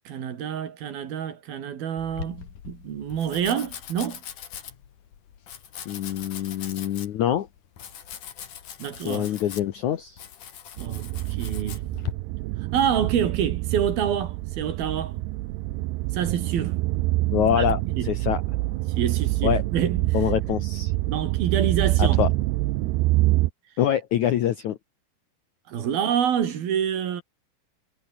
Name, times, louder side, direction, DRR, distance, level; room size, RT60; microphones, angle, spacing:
voice 1, 0.1-4.2 8.8-9.3 10.8-11.8 12.7-15.1 16.1-16.8 17.6-17.7 18.0-18.1 19.0-20.2 21.1-22.2 25.7-27.2, right 8 dB, 65° right, 4.2 m, -27 dB
Domestic sounds home sounds, 2.0-12.1, left 8 dB, 55° left, 3.6 m, -40 dB
voice 2, 5.9-7.5 9.1-10.2 17.3-18.4 19.4-19.6 20.1-20.9 22.0-22.3 23.8-24.8, left 10 dB, 70° left, 1.9 m, -25 dB
sound 1, 10.8-23.5, right 19 dB, 90° right, 2.8 m, -26 dB
omnidirectional pair, 4.8 m